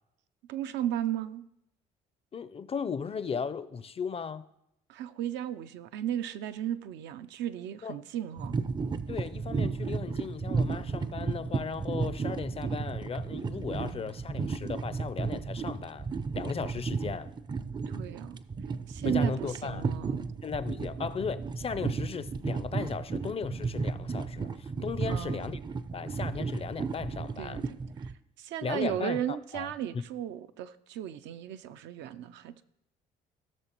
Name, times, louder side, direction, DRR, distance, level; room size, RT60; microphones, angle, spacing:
voice 1, 0.5-1.4 4.9-8.6 17.9-18.4 18.9-20.3 25.1-25.4 27.4-27.6 28.0-28.1 28.4-32.6, right 11 dB, 70° right, 11 dB, 0.5 m, -35 dB
voice 2, 2.3-4.5 7.8-7.9 9.1-16.1 16.3-17.3 19.0-19.8 20.4-25.6 25.9-27.6 28.6-30.0, left 6 dB, 30° left, 15 dB, 0.5 m, -36 dB
sound 1, 8.4-28.1, right 4 dB, 25° right, 0.5 m, -33 dB
16.0 x 6.4 x 3.0 m, 0.82 s
supercardioid pair, 70°, 19 cm